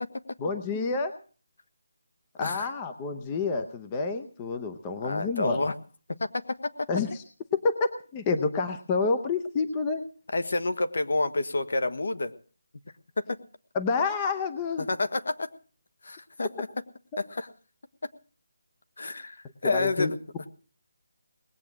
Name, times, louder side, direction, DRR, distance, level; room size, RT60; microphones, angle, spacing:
voice 1, 0.4-1.1 2.4-5.6 6.9-7.2 7.5-10.0 13.7-14.9 19.6-20.1, left 4 dB, 15° left, 7 dB, 0.7 m, -28 dB
voice 2, 5.0-5.7 6.2-6.3 6.6-6.9 10.3-12.3 13.2-13.3 14.8-15.5 16.0-16.7 17.2-17.5 19.0-20.5, left 2 dB, 60° left, 10 dB, 1.5 m, -29 dB
19.5 x 8.3 x 7.5 m, 0.40 s
figure-of-eight pair, 175°, 0 cm